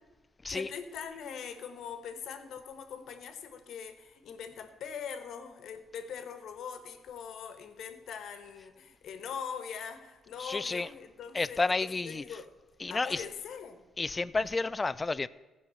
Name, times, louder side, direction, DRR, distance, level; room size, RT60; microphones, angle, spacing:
voice 1, 0.5-11.7 12.0-12.5 12.9-13.8 14.4-14.5, left 7 dB, 70° left, 1.3 m, -42 dB
voice 2, 10.4-10.9 11.3-12.2 12.8-13.2 14.0-15.3, left 3 dB, 25° left, 0.4 m, -31 dB
15.0 x 5.3 x 7.0 m
cardioid pair, 90°, 0 cm